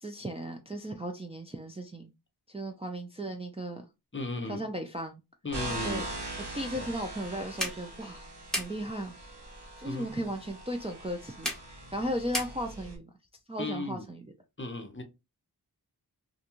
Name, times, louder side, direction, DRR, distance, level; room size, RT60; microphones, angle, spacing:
voice 1, 0.0-2.1 2.5-3.8 4.5-5.2 5.8-6.1 6.5-9.1 9.8-11.5 11.9-13.1 13.5-14.3, right 1 dB, 15° right, 0.4 m, -36 dB
voice 2, 4.1-4.7 5.4-6.0 6.7-6.9 9.8-10.3 13.6-14.0 14.6-15.0, left 2 dB, 30° left, 0.6 m, -36 dB
sound 1, 5.5-13.0, right 1 dB, 80° right, 0.9 m, -41 dB
sound 2, 6.9-13.0, equal, ahead, 0.9 m, -39 dB
2.5 x 2.2 x 2.9 m
wide cardioid pair, 55°, 40 cm